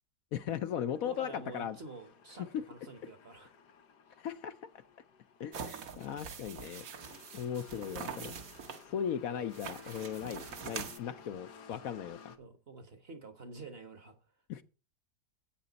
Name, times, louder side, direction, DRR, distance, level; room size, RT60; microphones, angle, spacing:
voice 1, 0.3-1.8 2.5-2.6 4.2-4.5 5.4-6.8 7.3-8.3 8.9-12.3 14.5-14.6, left 9 dB, 65° left, 1.0 m, -37 dB
sound 1, 0.9-12.4, left 6 dB, 85° left, 1.5 m, -56 dB
voice 2, 1.0-3.5 8.5-8.6 12.4-14.2, right 3 dB, 45° right, 1.2 m, -48 dB
sound 2, 5.5-8.8 9.5-11.0, right 6 dB, 60° right, 1.3 m, -44 dB
12.0 x 8.6 x 4.0 m
omnidirectional pair, 1.7 m